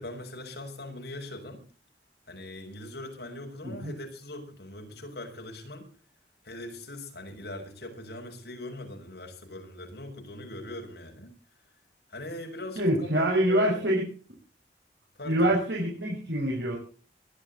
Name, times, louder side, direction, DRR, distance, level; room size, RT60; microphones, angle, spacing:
voice 1, 0.0-1.7 2.3-5.9 6.4-11.3 12.1-13.8 15.2-15.5, left 1 dB, 65° left, 2 dB, 6.5 m, -41 dB
voice 2, 12.8-14.0 15.2-16.8, right 1 dB, 75° right, -2 dB, 6.0 m, -25 dB
22.0 x 12.5 x 4.2 m, 0.38 s
head